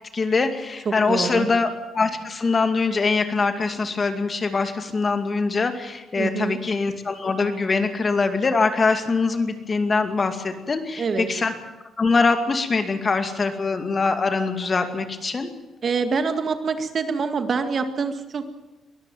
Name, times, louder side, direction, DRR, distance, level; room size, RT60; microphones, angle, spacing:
voice 1, 0.1-1.7 1.9-11.5 12.0-15.5, left 4 dB, 35° left, 7 dB, 2.3 m, -23 dB
voice 2, 0.9-1.5 6.2-6.6 11.0-11.3 15.8-18.4, right 5 dB, 45° right, 8 dB, 2.0 m, -25 dB
22.5 x 14.0 x 9.1 m, 1.1 s
cardioid pair, 90°, 0 cm